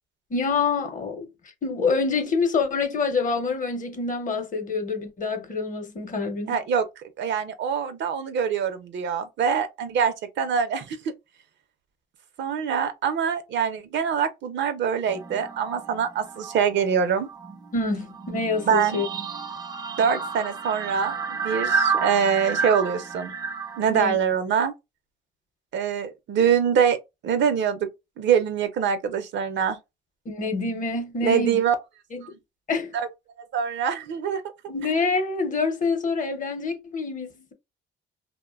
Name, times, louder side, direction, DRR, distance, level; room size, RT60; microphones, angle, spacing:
voice 1, 0.3-1.3 1.6-6.6 17.7-19.1 23.9-24.2 30.3-31.6 32.1-32.4 32.7-33.0 34.7-37.5, left 4 dB, 40° left, 0.7 m, -26 dB
voice 2, 6.5-6.9 7.2-11.1 12.4-17.3 18.7-19.0 20.0-23.3 23.8-24.7 25.7-27.0 27.2-27.9 28.2-29.8 31.2-31.7 32.9-33.1 33.4-34.4, right 7 dB, 65° right, 0.6 m, -24 dB
sound 1, 15.1-16.8 17.1-24.1, right 5 dB, 20° right, 0.4 m, -31 dB
2.5 x 2.1 x 2.3 m
cardioid pair, 90°, 20 cm